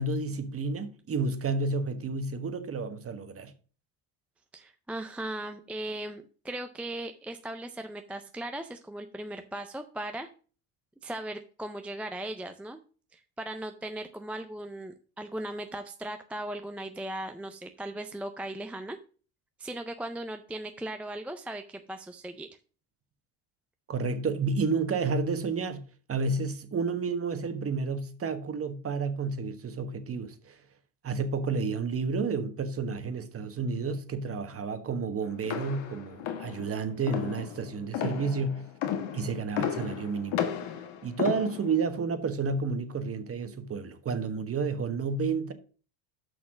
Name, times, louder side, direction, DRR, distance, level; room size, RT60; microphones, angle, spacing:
voice 1, 0.0-3.5 23.9-25.8 26.1-30.6 31.0-38.6 39.1-40.4 41.0-45.5, right 4 dB, 30° right, 1.3 m, -31 dB
voice 2, 4.5-10.3 11.0-12.8 13.1-19.0 19.6-22.5, right 1 dB, 5° right, 0.3 m, -38 dB
sound 1, 35.4-41.9, left 8 dB, 70° left, 1.7 m, -33 dB
6.4 x 5.9 x 6.0 m
supercardioid pair, 110°, 49 cm